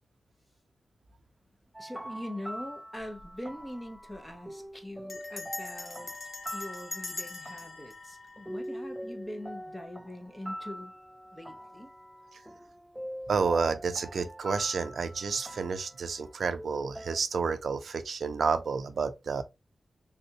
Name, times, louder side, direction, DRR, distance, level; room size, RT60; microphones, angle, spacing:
sound 1, 1.7-17.2, equal, 5° right, 0.3 m, -43 dB
voice 1, 1.8-6.1 6.5-10.9 11.3-11.9, left 1 dB, 10° left, 0.9 m, -42 dB
Bell, 3.0-3.3 3.6-3.7 3.9-4.3 5.1-9.2, left 3 dB, 55° left, 0.8 m, -42 dB
voice 2, 13.3-19.4, right 5 dB, 75° right, 0.4 m, -30 dB
3.3 x 2.6 x 2.9 m
wide cardioid pair, 75°, 0 cm